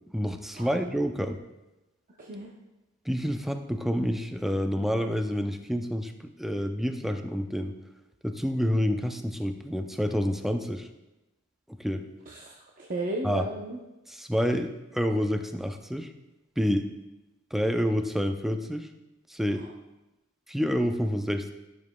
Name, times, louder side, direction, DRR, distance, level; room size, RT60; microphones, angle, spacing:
voice 1, 0.1-1.4 3.1-6.1 6.4-7.7 8.2-10.9 11.8-12.0 13.2-13.5 14.1-16.1 16.6-16.9 17.5-18.9 19.3-19.6 20.5-21.5, equal, ahead, 6 dB, 0.4 m, -28 dB
voice 2, 2.2-2.5 12.3-13.8 19.5-19.7, right 2 dB, 40° right, -2 dB, 0.7 m, -35 dB
12.5 x 7.0 x 2.2 m, 1.0 s
head